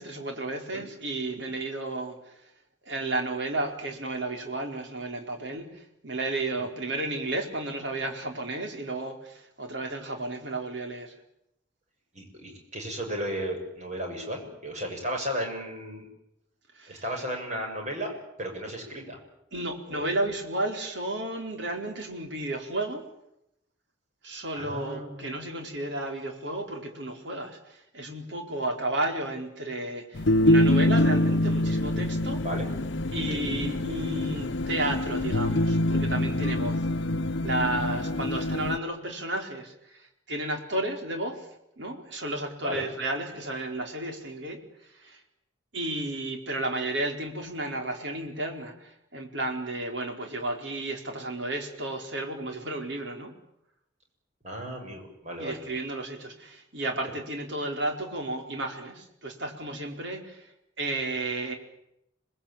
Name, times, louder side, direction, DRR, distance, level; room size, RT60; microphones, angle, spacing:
voice 1, 0.0-2.5 2.8-11.1 16.7-17.0 19.5-23.0 24.2-32.4 33.1-36.8 37.4-41.5 41.8-45.2 45.7-53.3 55.4-60.5 60.8-61.5, right 2 dB, 70° right, 4 dB, 4.4 m, -33 dB
voice 2, 12.1-16.1 16.9-18.1 18.4-19.2 19.9-20.1 24.5-25.4 32.4-32.7 33.3-33.4 37.9-38.0 42.6-42.9 54.4-55.6, equal, 35° right, 2 dB, 7.1 m, -34 dB
sound 1, 30.1-38.8, left 1 dB, 65° left, 0.9 m, -25 dB
27.5 x 20.5 x 8.8 m, 0.82 s
head